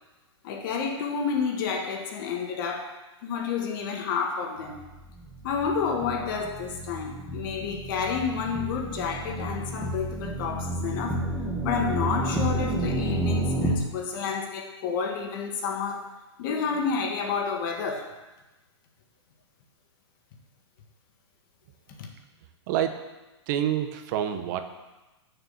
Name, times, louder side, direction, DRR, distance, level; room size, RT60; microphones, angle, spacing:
voice 1, 0.4-2.9 3.2-4.8 5.4-11.2 11.6-16.0 16.4-18.1 22.0-22.1, left 6 dB, 45° left, 3 dB, 1.7 m, -30 dB
sound 1, 4.7-13.8, right 1 dB, 5° right, 1.3 m, -31 dB
voice 2, 22.7-23.0 23.5-24.6, right 10 dB, 40° right, 8 dB, 0.9 m, -27 dB
6.8 x 6.6 x 7.8 m, 1.1 s
hypercardioid pair, 150°, 15 cm